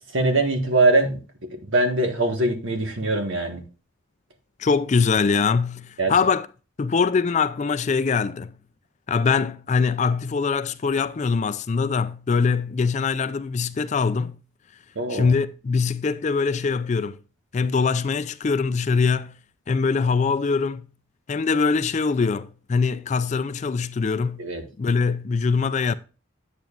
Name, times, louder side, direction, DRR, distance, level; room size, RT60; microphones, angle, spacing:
voice 1, 0.1-1.2 1.6-3.6 6.0-6.1 14.9-15.3 24.4-24.6, right 2 dB, 65° right, 1.5 m, -22 dB
voice 2, 4.6-6.5 6.8-8.5 9.1-14.4 15.1-17.2 17.5-19.3 19.7-20.9 21.3-24.4 24.8-25.9, left 5 dB, 35° left, 0.3 m, -23 dB
9.1 x 8.9 x 2.4 m
head